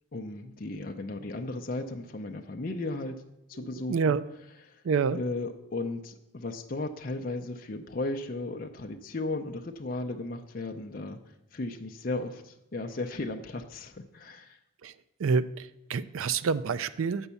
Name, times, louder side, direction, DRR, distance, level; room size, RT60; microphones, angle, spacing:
voice 1, 0.1-3.2 3.5-4.1 4.6-4.8 5.1-11.2 11.5-14.6, left 2 dB, 40° left, 4 dB, 0.5 m, -35 dB
voice 2, 3.6-4.2 4.8-5.2 14.8-14.9 15.2-17.3, right 5 dB, 70° right, 15 dB, 0.4 m, -28 dB
7.2 x 5.4 x 6.9 m, 0.84 s
head